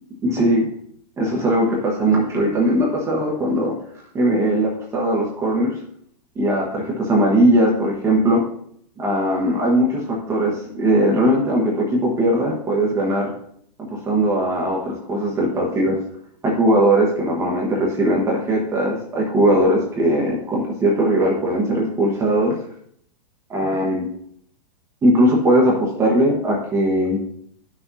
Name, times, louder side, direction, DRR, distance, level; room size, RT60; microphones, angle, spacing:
voice 1, 0.2-0.7 1.2-3.7 4.1-5.8 6.3-8.4 9.0-13.3 13.9-16.0 16.4-22.5 23.5-24.0 25.0-27.2, right 1 dB, 15° right, -3 dB, 1.2 m, -19 dB
10.5 x 6.1 x 2.7 m, 0.68 s
hypercardioid pair, 155°, 21 cm